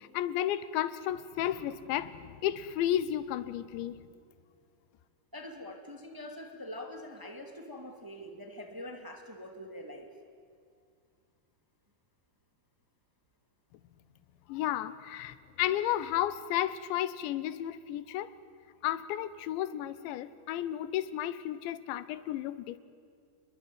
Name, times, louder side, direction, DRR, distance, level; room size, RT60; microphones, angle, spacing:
voice 1, 0.0-4.0 14.5-18.3 18.8-22.8, left 12 dB, 85° left, 15 dB, 3.3 m, -33 dB
voice 2, 5.3-10.1, left 1 dB, 15° right, 4 dB, 0.7 m, -44 dB
29.0 x 22.0 x 9.2 m, 2.3 s
omnidirectional pair, 5.1 m